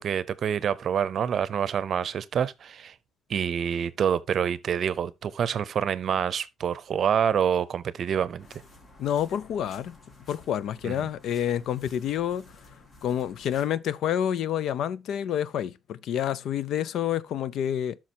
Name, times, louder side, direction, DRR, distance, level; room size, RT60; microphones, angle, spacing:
voice 1, 0.0-2.9 3.3-8.5 10.8-11.1, right 8 dB, 60° right, 0.6 m, -27 dB
sound 1, 8.4-13.7, left 2 dB, 50° left, 4.3 m, -53 dB
voice 2, 9.0-10.0 10.3-12.4 13.0-18.0, left 10 dB, 75° left, 0.5 m, -28 dB
13.0 x 5.9 x 2.8 m
cardioid pair, 90°, 0 cm